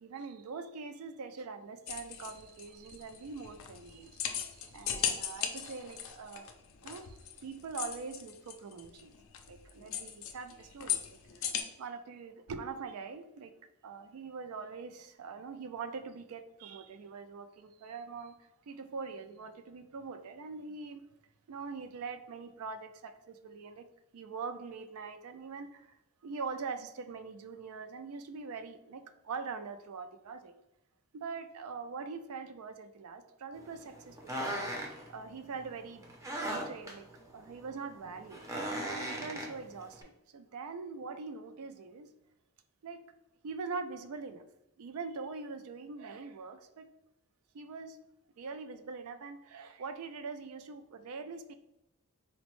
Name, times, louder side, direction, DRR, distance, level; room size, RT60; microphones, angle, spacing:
voice 1, 0.0-6.5 6.8-9.1 9.5-11.5 11.8-13.6 13.8-18.3 18.7-21.1 21.5-23.9 24.1-26.0 26.2-30.6 31.1-36.0 36.5-37.1 37.3-38.4 38.8-42.1 42.8-43.0 43.4-44.4 44.8-46.9 47.5-48.0 48.4-51.5, right 4 dB, 75° right, 0.4 m, -43 dB
sound 1, 1.9-11.6, left 9 dB, 60° left, 0.4 m, -38 dB
sound 2, 33.5-40.0, right 1 dB, 15° right, 0.5 m, -39 dB
4.1 x 2.0 x 3.0 m
head